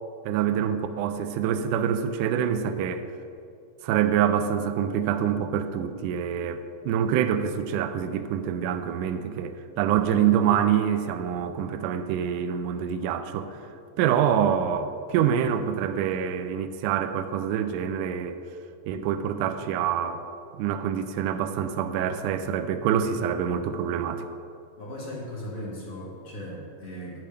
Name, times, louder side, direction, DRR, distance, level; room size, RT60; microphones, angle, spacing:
voice 1, 0.3-3.1 3.8-13.6 14.0-18.4 18.9-20.2 20.6-24.3, right 9 dB, 80° right, 9 dB, 2.0 m, -26 dB
voice 2, 24.8-27.2, equal, 50° left, -4 dB, 2.2 m, -37 dB
12.0 x 8.7 x 3.4 m, 2.5 s
omnidirectional pair, 3.8 m